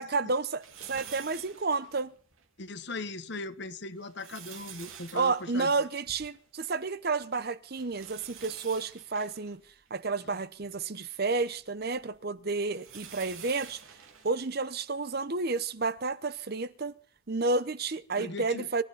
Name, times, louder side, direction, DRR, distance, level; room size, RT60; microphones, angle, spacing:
voice 1, 0.0-2.1 5.1-9.6 9.9-13.8 14.2-17.0 17.3-18.8, right 3 dB, 45° right, 0.8 m, -31 dB
sound 1, 0.6-2.5 3.0-3.1 3.8-6.8 7.1-7.2 7.7-10.7 11.4-15.3 16.0-16.1 17.4-17.5, right 8 dB, 75° right, 3.4 m, -49 dB
voice 2, 2.6-5.7 18.1-18.7, left 2 dB, 55° left, 1.2 m, -39 dB
26.0 x 13.5 x 4.1 m
head